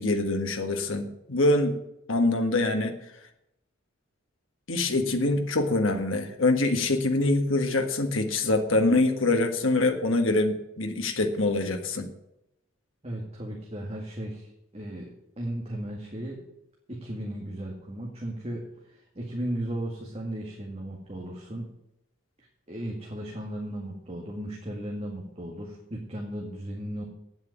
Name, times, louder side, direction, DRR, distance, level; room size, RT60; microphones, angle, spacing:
voice 1, 0.0-1.8 2.1-2.9 4.7-12.1, left 2 dB, 70° left, 5 dB, 1.6 m, -24 dB
voice 2, 13.0-15.1 15.4-16.4 16.9-21.7 22.7-27.0, right 1 dB, 30° right, -1 dB, 1.9 m, -35 dB
9.1 x 8.0 x 9.2 m, 0.83 s
head